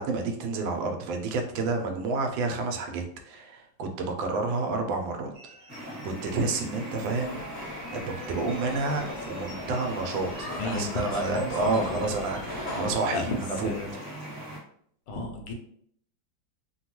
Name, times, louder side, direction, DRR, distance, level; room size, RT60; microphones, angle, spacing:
voice 1, 0.0-5.3 6.0-7.4 7.9-13.3 13.6-13.7, right 3 dB, 80° right, 4 dB, 1.3 m, -29 dB
sound 1, 5.3-12.5, right 2 dB, 55° right, 0.6 m, -51 dB
sound 2, 5.7-14.6, equal, 25° right, 1.3 m, -40 dB
sound 3, 7.1-12.9, left 1 dB, 45° left, 0.8 m, -39 dB
voice 2, 10.6-11.8 12.1-12.3 13.1-13.9 15.1-15.5, left 2 dB, 75° left, 2 dB, 1.3 m, -33 dB
3.3 x 2.2 x 2.9 m, 0.64 s
omnidirectional pair, 2.1 m